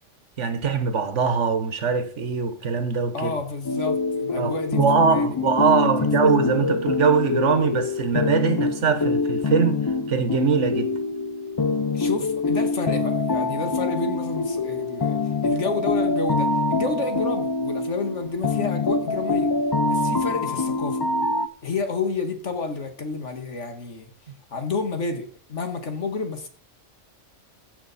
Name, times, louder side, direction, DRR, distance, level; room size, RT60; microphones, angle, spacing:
voice 1, 0.4-3.3 4.4-10.9, right 6 dB, 70° right, 1.6 m, -22 dB
voice 2, 3.1-4.8 5.1-6.1 11.9-19.5 19.8-21.1 21.6-24.1 24.5-26.5, left 4 dB, 70° left, 2.0 m, -30 dB
sound 1, 3.6-21.5, left 3 dB, 40° left, 0.3 m, -25 dB
16.0 x 7.0 x 4.2 m
omnidirectional pair, 1.3 m